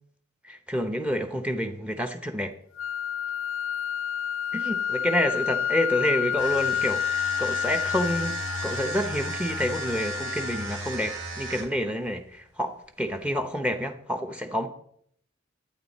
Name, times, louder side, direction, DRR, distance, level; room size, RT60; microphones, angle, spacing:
voice 1, 0.4-2.5 4.5-8.4 8.6-14.7, equal, 5° right, 7 dB, 0.7 m, -28 dB
sound 1, 2.8-10.8, left 9 dB, 70° left, 0.3 m, -30 dB
sound 2, 6.3-11.9, right 2 dB, 75° right, 2.5 m, -35 dB
11.5 x 9.0 x 4.1 m, 0.68 s
head